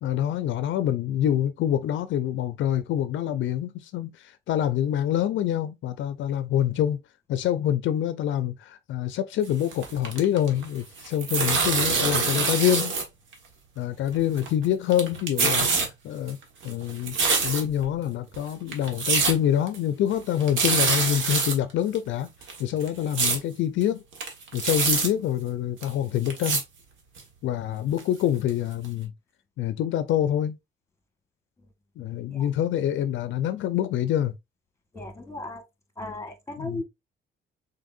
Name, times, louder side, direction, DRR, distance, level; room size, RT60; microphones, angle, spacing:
voice 1, 0.0-7.0 7.3-13.0 13.8-15.7 16.0-16.4 16.6-17.2 17.4-22.3 22.6-24.0 24.5-26.6 27.4-29.1 29.6-30.6 32.0-34.3 36.6-36.8, left 10 dB, 75° left, 0.4 m, -26 dB
sound 1, 9.5-10.7 11.0-13.0 13.3-13.4 14.1-14.7 14.9-15.9 16.3-17.8 18.3-18.4 18.7-19.4 19.7-19.8 20.1-20.2 20.4-21.6 22.0-22.1 22.4-23.4 23.8-23.9 24.1-25.1 25.8-25.9 26.3-26.6 27.2-27.3 28.0-28.1 28.5-28.6 28.8-28.9, right 4 dB, 75° right, 1.3 m, -25 dB
voice 2, 34.9-35.6 36.0-36.8, left 2 dB, 15° left, 1.2 m, -36 dB
3.9 x 3.7 x 2.4 m
cardioid pair, 90°, 20 cm